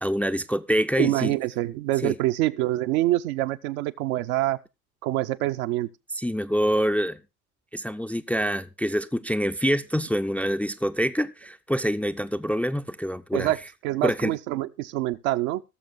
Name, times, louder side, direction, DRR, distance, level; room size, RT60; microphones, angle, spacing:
voice 1, 0.0-1.4 2.0-2.2 6.2-7.2 7.7-13.5 14.0-14.4, equal, 5° left, 0.5 m, -26 dB
voice 2, 1.0-4.6 5.0-5.9 13.3-13.6 13.8-15.6, right 16 dB, 65° right, 0.9 m, -25 dB
18.5 x 6.7 x 3.8 m
hypercardioid pair, 70°, 45 cm